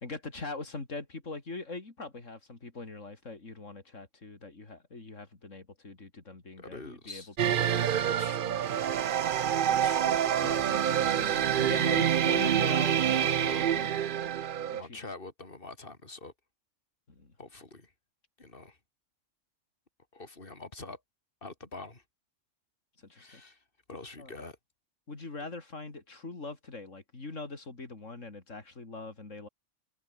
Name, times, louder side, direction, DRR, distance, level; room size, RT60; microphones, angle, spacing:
voice 1, 0.0-7.6 10.6-14.0 14.7-15.0 17.1-17.3 23.0-23.4 24.2-24.3 25.1-29.5, left 3 dB, 90° left, 3.9 m, -42 dB
voice 2, 6.6-7.3 7.6-8.8 9.6-10.6 13.2-13.8 14.7-16.3 17.4-17.9 18.4-18.8 20.1-21.0 21.4-22.0 23.2-24.6, left 3 dB, 45° left, 3.7 m, -45 dB
sound 1, 7.4-14.8, right 9 dB, 55° right, 0.7 m, -27 dB
omnidirectional pair, 1.3 m